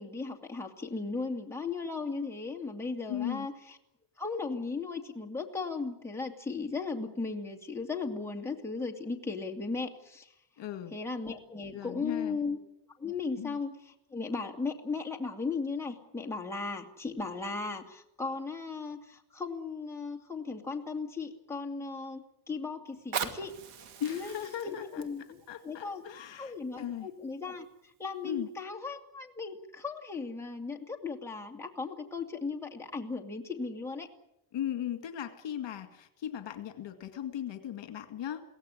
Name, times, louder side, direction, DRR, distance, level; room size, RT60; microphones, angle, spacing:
voice 1, 0.0-3.5 4.2-10.3 10.9-12.6 13.0-13.7 14.1-23.5 24.1-24.4 24.6-26.0 26.4-27.7 28.0-34.1, left 4 dB, 5° left, 1 dB, 2.3 m, -36 dB
voice 2, 3.1-3.5 10.6-11.0 11.7-12.4 13.4-13.6 24.0-25.1 25.5-27.1 28.2-28.5 34.5-38.4, left 10 dB, 60° left, 8 dB, 2.1 m, -37 dB
Fire, 22.9-27.8 28.5-28.6, right 7 dB, 90° right, 2.6 m, -41 dB
23.0 x 17.0 x 9.8 m, 0.82 s
cardioid pair, 155°, 49 cm